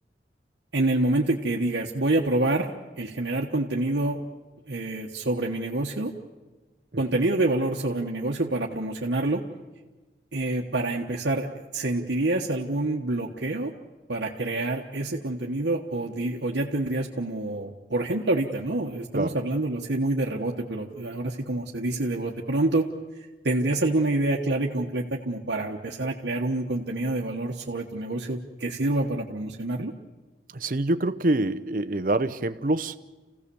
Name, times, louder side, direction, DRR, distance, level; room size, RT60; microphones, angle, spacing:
voice 1, 0.7-2.7 3.0-4.2 4.7-6.1 7.0-9.4 10.3-11.5 11.7-13.7 14.1-22.9 23.4-29.9, right 2 dB, 85° right, -2 dB, 1.3 m, -27 dB
voice 2, 30.5-32.9, right 2 dB, 50° right, 12 dB, 0.8 m, -25 dB
28.5 x 16.5 x 7.0 m, 1.2 s
head